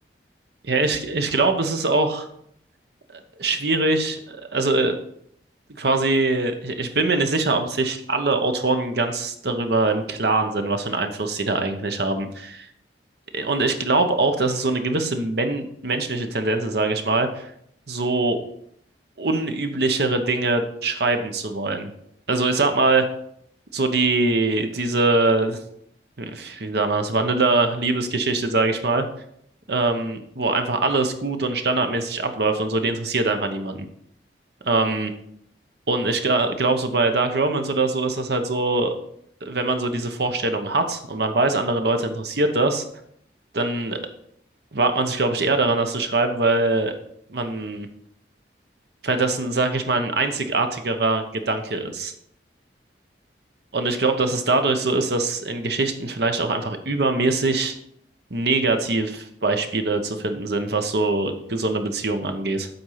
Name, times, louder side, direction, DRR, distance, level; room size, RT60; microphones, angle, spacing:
voice 1, 0.6-2.3 3.4-4.9 5.8-12.7 13.3-17.5 17.9-18.4 19.2-21.9 22.3-23.0 23.7-25.6 26.2-29.1 29.7-33.8 34.6-35.1 35.9-38.9 39.4-42.8 43.5-44.0 44.7-46.9 47.3-47.9 49.0-52.1 53.7-57.7 58.3-62.7, right 3 dB, 65° right, 6 dB, 0.9 m, -23 dB
8.0 x 4.4 x 5.6 m, 0.70 s
head